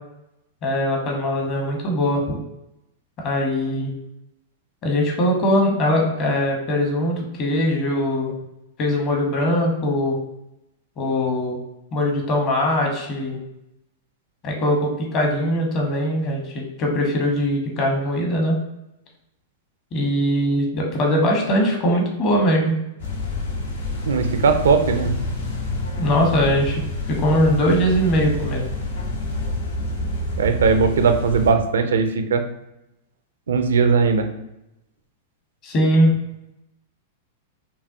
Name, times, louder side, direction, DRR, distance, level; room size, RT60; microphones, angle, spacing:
voice 1, 0.6-2.4 3.2-3.9 4.8-8.3 8.8-10.2 11.0-11.6 11.9-13.4 14.4-18.6 19.9-22.7 26.0-26.8 27.1-28.7 35.6-36.1, equal, 40° left, 1 dB, 1.1 m, -21 dB
sound 1, 23.0-31.5, left 2 dB, 75° left, 1.1 m, -28 dB
voice 2, 24.1-25.1 30.4-32.4 33.5-34.3, right 5 dB, 75° right, 7 dB, 0.5 m, -18 dB
5.3 x 2.3 x 2.7 m, 0.88 s
hypercardioid pair, 100°, 0 cm